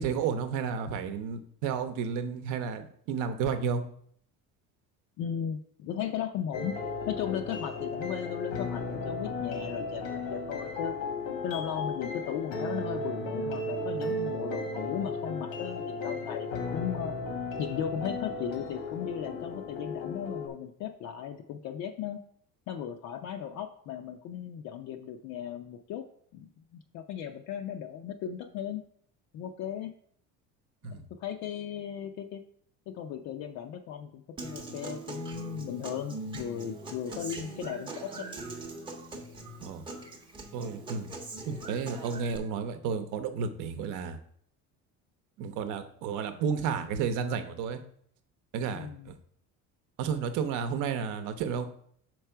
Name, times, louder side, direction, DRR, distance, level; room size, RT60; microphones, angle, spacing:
voice 1, 0.0-3.8 30.8-31.1 39.6-39.9 40.5-41.1 41.5-44.2 45.4-47.8 48.5-49.1 50.0-51.7, right 6 dB, 60° right, 9 dB, 0.8 m, -32 dB
voice 2, 5.2-6.8 7.1-10.9 11.4-17.1 17.6-22.2 22.7-26.0 26.3-28.8 29.3-29.9 30.8-32.4 32.9-38.3 48.7-49.1, left 9 dB, 50° left, 5 dB, 0.5 m, -36 dB
sound 1, 6.5-20.5, left 2 dB, 85° left, 1.3 m, -35 dB
Human voice / Acoustic guitar, 34.4-42.4, right 2 dB, 15° right, 0.7 m, -42 dB
5.7 x 4.7 x 4.5 m, 0.63 s
cardioid pair, 170°, 35 cm